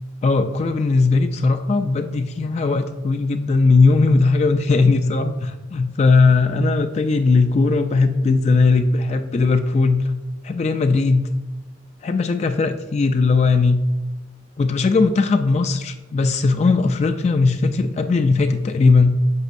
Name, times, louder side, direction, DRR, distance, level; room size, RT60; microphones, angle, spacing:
voice 1, 0.2-10.1 10.4-11.3 12.0-13.8 14.6-19.2, left 3 dB, 35° left, 7 dB, 0.3 m, -18 dB
8.0 x 5.3 x 2.5 m, 1.1 s
head